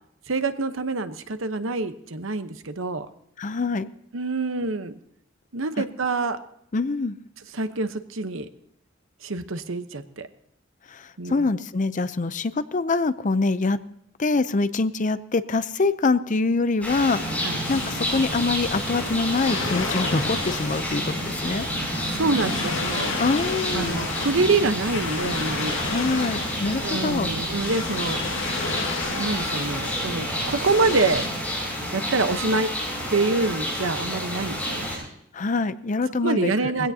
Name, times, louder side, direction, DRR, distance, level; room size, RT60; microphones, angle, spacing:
voice 1, 0.3-3.1 4.1-4.9 5.5-6.4 7.5-8.5 9.2-10.3 11.2-11.5 17.4-17.6 22.1-23.1 23.7-25.8 26.7-28.2 29.1-31.2 31.9-32.7 33.1-34.6 36.2-36.9, right 3 dB, 80° right, 10 dB, 1.0 m, -26 dB
voice 2, 3.4-3.9 6.7-7.2 10.9-13.8 14.2-21.7 23.2-24.0 25.9-27.3 35.3-36.7, left 3 dB, 40° left, 14 dB, 0.6 m, -25 dB
sound 1, 16.8-35.0, equal, 5° left, 7.2 m, -29 dB
sound 2, 17.6-31.3, left 3 dB, 75° left, 2.2 m, -33 dB
21.0 x 16.5 x 2.8 m, 0.71 s
head